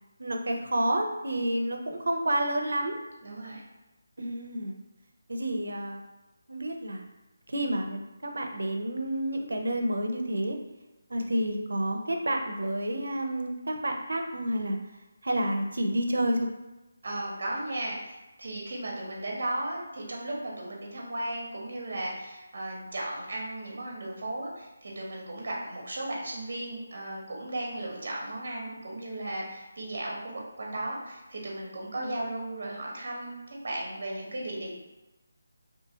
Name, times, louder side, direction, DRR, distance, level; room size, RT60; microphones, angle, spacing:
voice 1, 0.2-3.0 4.2-4.8 5.3-6.0 6.5-7.0 7.5-10.6 11.1-14.8 15.2-16.5 31.9-32.1, right 1 dB, 90° right, 3 dB, 0.4 m, -29 dB
voice 2, 3.2-3.6 17.0-33.3 33.6-34.7, right 1 dB, 45° right, -2 dB, 0.6 m, -35 dB
2.6 x 2.4 x 2.7 m, 1.0 s
figure-of-eight pair, 175°, 0 cm